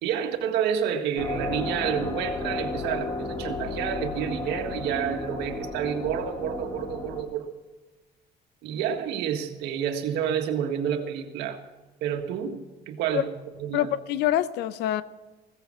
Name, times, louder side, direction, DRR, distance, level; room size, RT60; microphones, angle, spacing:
voice 1, 0.0-7.5 8.6-11.6 12.0-12.6 12.9-13.3 13.6-13.9, right 8 dB, 90° right, 5 dB, 1.8 m, -29 dB
sound 1, 1.2-7.2, left 2 dB, 25° left, 2.7 m, -33 dB
voice 2, 13.7-15.0, left 12 dB, 85° left, 15 dB, 0.8 m, -25 dB
16.0 x 15.0 x 4.4 m, 1.2 s
cardioid pair, 110°, 17 cm